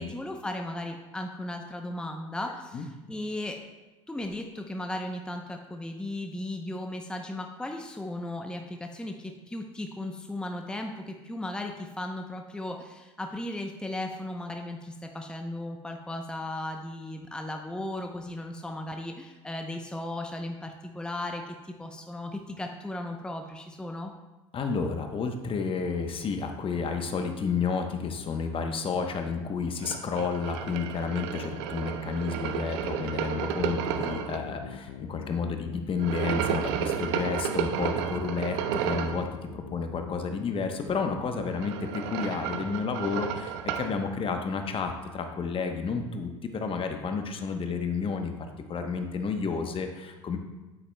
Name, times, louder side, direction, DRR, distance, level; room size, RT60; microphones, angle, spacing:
voice 1, 0.0-3.6 4.1-24.1, left 1 dB, 5° left, 3 dB, 0.7 m, -36 dB
voice 2, 24.5-38.6 38.8-39.3 39.5-48.3 48.7-50.4, left 5 dB, 35° left, 5 dB, 0.9 m, -31 dB
sound 1, 29.8-34.4 36.0-39.2 41.3-43.9, right 8 dB, 70° right, 0.6 m, -32 dB
sound 2, 33.1-41.8, left 10 dB, 75° left, 0.5 m, -44 dB
8.9 x 8.1 x 2.2 m, 1.1 s
hypercardioid pair, 70°, 15 cm